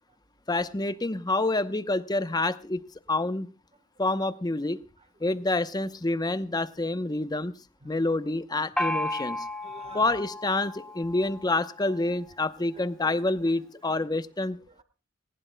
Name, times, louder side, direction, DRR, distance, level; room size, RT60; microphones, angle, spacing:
voice 1, 0.5-2.8 3.1-3.5 4.0-4.8 5.2-7.5 7.8-9.4 9.9-14.6, left 2 dB, 20° left, 13 dB, 0.8 m, -27 dB
Gong, 8.8-12.3, left 1 dB, 5° left, 1.1 m, -34 dB
voice 2, 9.6-10.2 12.7-13.2 13.8-14.1 14.7-14.8, right 3 dB, 30° right, 10 dB, 1.3 m, -49 dB
19.5 x 19.0 x 2.2 m, 0.35 s
head